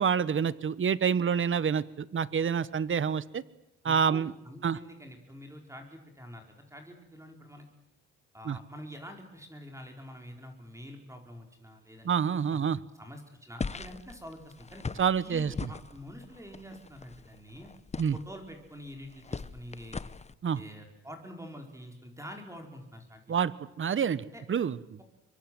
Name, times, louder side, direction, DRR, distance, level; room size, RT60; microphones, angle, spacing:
voice 1, 0.0-3.4 3.8-4.3 4.6-4.8 8.5-8.6 12.0-12.8 15.0-15.7 18.0-18.2 20.4-20.6 23.3-23.5 23.8-25.0, right 7 dB, 40° right, 18 dB, 1.2 m, -27 dB
voice 2, 3.8-7.7 8.3-12.1 12.5-12.6 13.0-14.9 15.2-17.7 18.1-20.0 20.5-23.3 24.2-24.4, equal, 10° right, 3 dB, 4.7 m, -46 dB
sound 1, 13.6-20.3, left 4 dB, 20° left, 0.9 m, -41 dB
25.5 x 23.5 x 7.7 m, 0.91 s
cardioid pair, 90°, 30 cm